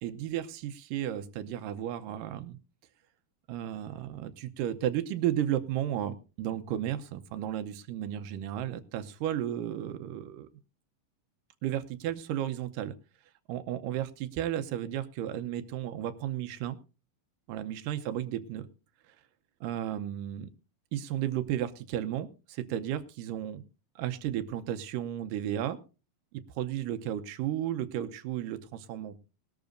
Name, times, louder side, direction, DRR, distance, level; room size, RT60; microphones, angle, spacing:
voice 1, 0.0-2.6 3.5-10.5 11.6-12.9 13.5-16.8 17.5-18.7 19.6-20.5 20.9-23.6 24.0-25.8 26.6-29.2, right 11 dB, 75° right, 9 dB, 2.1 m, -33 dB
20.0 x 12.0 x 2.6 m, 0.32 s
omnidirectional pair, 4.4 m